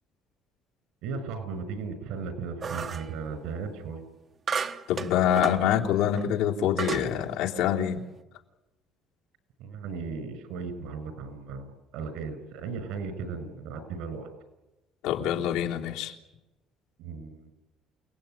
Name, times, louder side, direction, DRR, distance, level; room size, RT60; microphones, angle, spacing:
voice 1, 1.0-4.1 9.6-14.3 17.0-17.5, right 5 dB, 75° right, 10 dB, 6.0 m, -36 dB
sound 1, 2.6-3.1 4.5-5.6 6.2-6.3 6.8-7.1, right 6 dB, 30° right, 1.1 m, -32 dB
voice 2, 4.9-8.0 15.0-16.1, left 10 dB, 85° left, 0 dB, 3.3 m, -26 dB
29.0 x 19.0 x 9.2 m, 1.0 s
cardioid pair, 165°, 0 cm